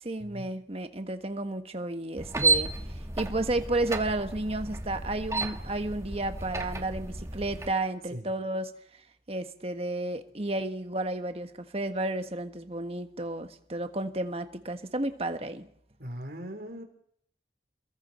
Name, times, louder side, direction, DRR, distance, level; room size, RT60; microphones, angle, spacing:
voice 1, 0.0-2.7 3.2-9.0 9.3-15.7, right 2 dB, 35° right, 1.4 m, -32 dB
sound 1, 2.2-7.7, right 3 dB, 15° right, 1.8 m, -32 dB
voice 2, 16.0-16.8, equal, 60° right, 4.0 m, -39 dB
29.0 x 21.5 x 4.4 m
head